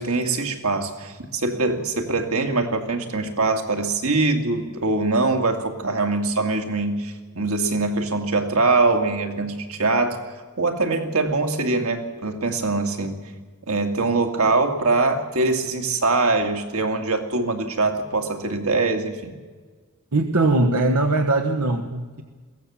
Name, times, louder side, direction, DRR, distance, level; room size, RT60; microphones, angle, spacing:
voice 1, 0.0-10.3 10.6-13.3 13.7-19.4, right 3 dB, 70° right, 5 dB, 2.3 m, -23 dB
voice 2, 20.1-22.2, right 2 dB, 85° right, 6 dB, 1.3 m, -21 dB
22.5 x 16.5 x 7.3 m, 1.4 s
head